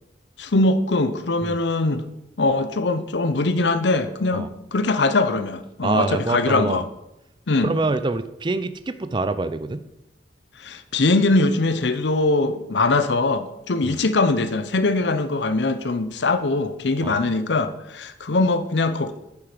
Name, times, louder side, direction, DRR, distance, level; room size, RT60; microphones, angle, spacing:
voice 1, 0.4-2.0 2.4-6.9 7.5-7.7 10.6-19.2, left 2 dB, 80° left, 11 dB, 0.7 m, -22 dB
voice 2, 5.8-6.8 7.6-9.8 13.8-14.0 17.0-17.2, right 3 dB, 25° right, 12 dB, 0.4 m, -25 dB
9.4 x 7.2 x 5.1 m, 0.87 s
head